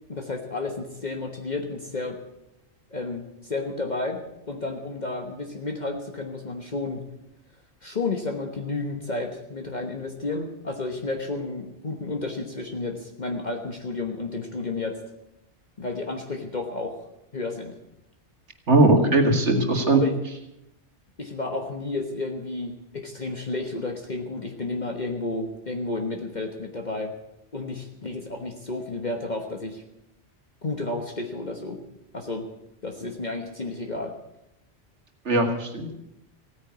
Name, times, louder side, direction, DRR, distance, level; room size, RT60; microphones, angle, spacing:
voice 1, 0.1-2.2 2.9-7.0 7.8-15.0 15.8-17.1 17.3-17.8 19.9-20.2 21.2-27.1 27.5-29.8 30.6-31.8 32.1-32.5 32.8-34.1, left 3 dB, 40° left, 3 dB, 1.4 m, -31 dB
voice 2, 18.7-20.0 35.3-35.9, right 2 dB, 75° right, 4 dB, 2.4 m, -19 dB
16.5 x 9.8 x 8.2 m, 0.86 s
omnidirectional pair, 1.2 m